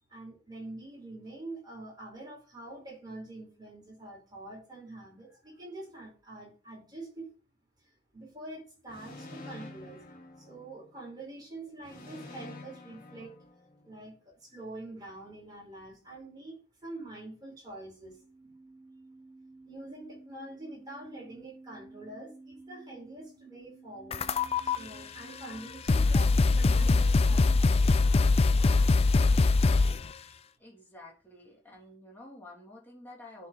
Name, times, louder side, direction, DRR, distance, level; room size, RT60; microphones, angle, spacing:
voice 1, 0.1-7.3 8.1-13.3 13.8-18.5 19.6-27.8 30.1-30.4, right 2 dB, 20° right, -2 dB, 5.1 m, -45 dB
sound 1, 8.9-11.1 11.8-14.0, left 2 dB, 50° left, 2.2 m, -48 dB
sound 2, 18.0-27.6, right 2 dB, 55° right, 2.6 m, -52 dB
sound 3, 24.1-24.8 25.5-25.6 25.9-30.1, left 3 dB, 30° left, 0.4 m, -23 dB
voice 2, 30.6-33.5, left 2 dB, 10° left, -3 dB, 3.2 m, -50 dB
10.5 x 4.6 x 4.1 m, 0.36 s
head